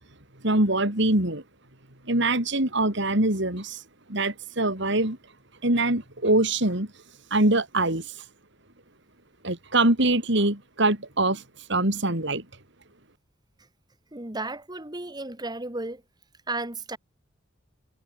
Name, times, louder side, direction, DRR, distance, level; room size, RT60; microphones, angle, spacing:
voice 1, 0.4-1.4 2.0-3.8 4.1-5.2 5.6-6.9 7.3-8.1 9.4-11.4 11.7-12.4, right 2 dB, 60° right, 5.1 m, -23 dB
voice 2, 14.1-16.0 16.5-17.0, right 2 dB, 20° right, 2.2 m, -33 dB
head